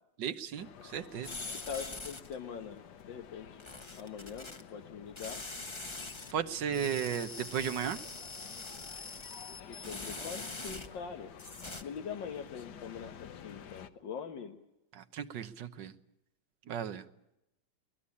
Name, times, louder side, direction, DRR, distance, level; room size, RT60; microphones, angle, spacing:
voice 1, 0.2-1.3 6.3-8.0 15.0-15.9 16.7-17.0, right 8 dB, 75° right, 11 dB, 1.7 m, -35 dB
sound 1, 0.6-13.9, left 8 dB, 70° left, 1.6 m, -52 dB
sound 2, 1.2-2.4 3.6-4.6 5.2-6.3 6.7-11.1 11.4-11.8, left 3 dB, 20° left, 1.0 m, -43 dB
voice 2, 1.5-3.6 3.9-5.4 9.7-11.3 11.8-14.6, left 6 dB, 85° left, 4 dB, 2.0 m, -43 dB
23.0 x 19.5 x 8.5 m, 0.88 s
omnidirectional pair, 1.9 m